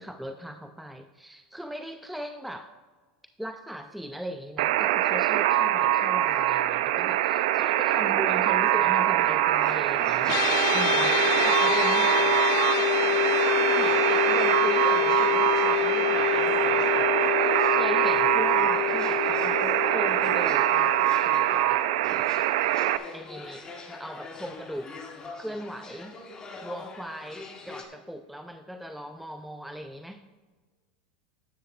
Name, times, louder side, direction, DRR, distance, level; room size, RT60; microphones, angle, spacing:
voice 1, 0.0-2.7 3.4-10.4 10.7-11.1 11.4-12.1 13.4-17.2 17.7-21.9 23.1-24.9 25.4-26.2 26.6-30.2, equal, ahead, 7 dB, 0.4 m, -38 dB
Alarm, 4.6-23.0, right 13 dB, 70° right, 0.4 m, -24 dB
voice 2, 7.7-8.2 10.7-12.3, right 6 dB, 35° right, 8 dB, 1.0 m, -46 dB
sound 1, 9.6-27.8, left 3 dB, 20° left, 1.3 m, -43 dB
sound 2, 10.3-21.7, left 20 dB, 60° left, 0.4 m, -27 dB
13.0 x 10.5 x 2.4 m, 1.4 s
supercardioid pair, 125°, 4 cm